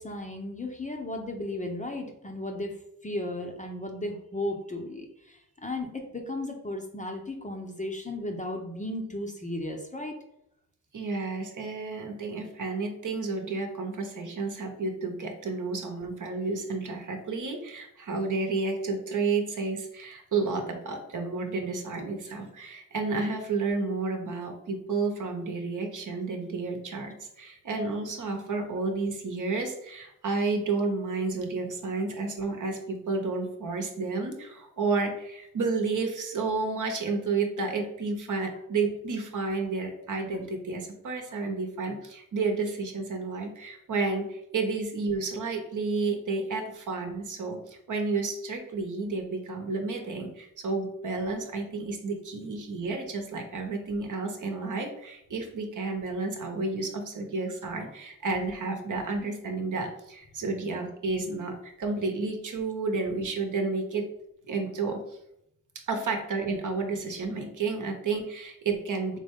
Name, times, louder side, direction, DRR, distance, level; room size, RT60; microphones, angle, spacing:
voice 1, 0.0-10.2, left 1 dB, 20° left, 2 dB, 0.8 m, -35 dB
voice 2, 10.9-64.1 64.5-65.0 65.9-69.2, right 3 dB, 50° right, 3 dB, 1.0 m, -31 dB
3.8 x 3.1 x 3.6 m, 0.78 s
supercardioid pair, 60°, 40 cm